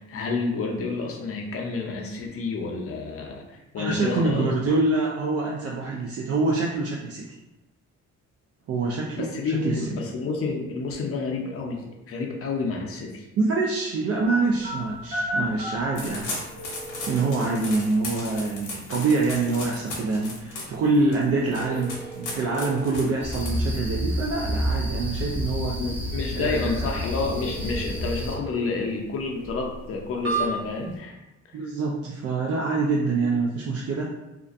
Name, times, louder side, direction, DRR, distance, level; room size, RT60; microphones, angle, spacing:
voice 1, 0.0-4.5 9.2-13.3 25.8-31.1, left 4 dB, 50° left, 0 dB, 0.6 m, -29 dB
voice 2, 3.8-7.2 8.7-9.3 9.6-10.0 13.4-16.3 17.1-25.8 26.4-26.9 31.5-34.1, right 3 dB, 55° right, -3 dB, 0.4 m, -25 dB
sound 1, 14.3-31.0, right 1 dB, 80° right, 1.3 m, -37 dB
sound 2, 16.0-24.0, left 2 dB, 80° left, 0.7 m, -37 dB
sound 3, 23.2-28.3, equal, 5° right, 0.6 m, -29 dB
2.4 x 2.2 x 2.5 m, 0.99 s
cardioid pair, 90°, 30 cm